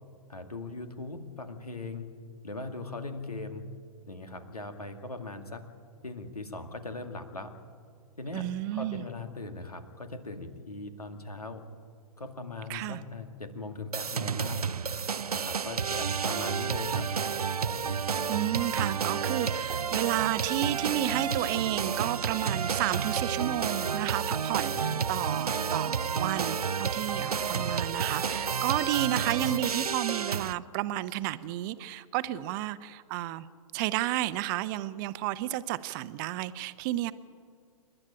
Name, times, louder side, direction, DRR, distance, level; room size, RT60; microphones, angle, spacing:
voice 1, 0.3-2.1 2.4-3.6 4.1-5.6 6.0-7.5 8.2-11.6 12.2-14.7 15.3-17.1 17.7-18.1 24.7-25.2, left 3 dB, 80° left, 7 dB, 2.3 m, -40 dB
voice 2, 8.3-9.0 12.7-13.0 18.3-33.5 33.7-37.1, right 14 dB, 35° right, 15 dB, 0.8 m, -32 dB
sound 1, 13.9-30.5, right 6 dB, 80° right, 0.5 m, -30 dB
28.0 x 12.0 x 8.9 m, 2.3 s
figure-of-eight pair, 110°, 19 cm